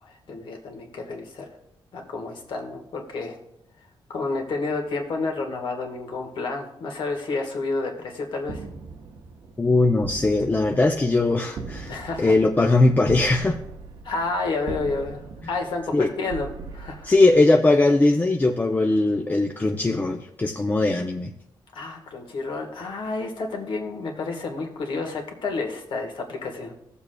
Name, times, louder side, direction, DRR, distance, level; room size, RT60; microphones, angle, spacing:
voice 1, 0.0-1.5 1.9-3.4 4.1-8.7 11.8-12.4 14.0-16.5 16.7-17.1 21.7-26.7, left 3 dB, 70° left, 2 dB, 1.5 m, -30 dB
sound 1, 8.4-17.9, right 4 dB, 90° right, 0.9 m, -40 dB
voice 2, 9.6-13.6 15.9-16.1 17.0-21.3, left 2 dB, 20° left, 3 dB, 0.5 m, -20 dB
15.5 x 7.0 x 2.2 m, 0.78 s
wide cardioid pair, 135°, 9 cm